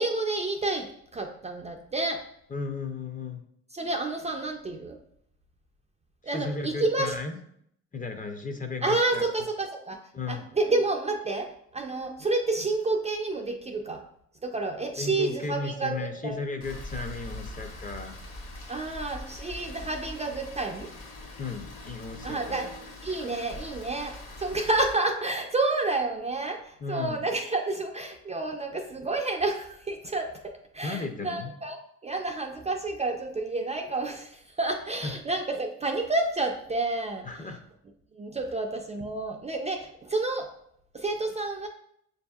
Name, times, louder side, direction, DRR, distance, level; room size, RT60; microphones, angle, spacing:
voice 1, 0.0-2.2 3.7-5.0 6.2-7.1 8.8-10.0 10.3-14.0 14.4-16.4 18.7-20.9 22.2-22.7 23.0-37.3 38.2-40.5 40.9-41.7, right 2 dB, 25° right, 3 dB, 0.4 m, -30 dB
voice 2, 2.5-3.4 6.2-7.4 7.9-9.2 10.1-10.5 15.0-18.2 21.4-22.7 26.8-27.2 30.8-31.5 35.0-35.1 37.2-37.6, left 4 dB, 25° left, 6 dB, 0.5 m, -35 dB
Rain, 16.6-24.9, left 1 dB, 55° left, 1.2 m, -42 dB
6.6 x 2.6 x 2.3 m, 0.70 s
cardioid pair, 90°, 30 cm